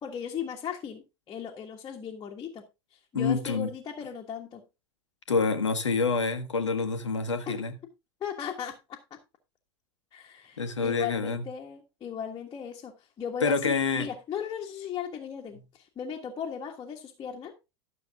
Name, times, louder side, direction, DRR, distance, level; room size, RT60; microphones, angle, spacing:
voice 1, 0.0-4.6 7.5-7.6 8.2-9.0 10.1-17.5, left 8 dB, 25° left, 1.5 m, -37 dB
voice 2, 3.1-3.7 5.3-7.8 10.6-11.4 13.4-14.1, left 4 dB, 80° left, 1.2 m, -27 dB
12.5 x 6.7 x 3.5 m
figure-of-eight pair, 85°, 15 cm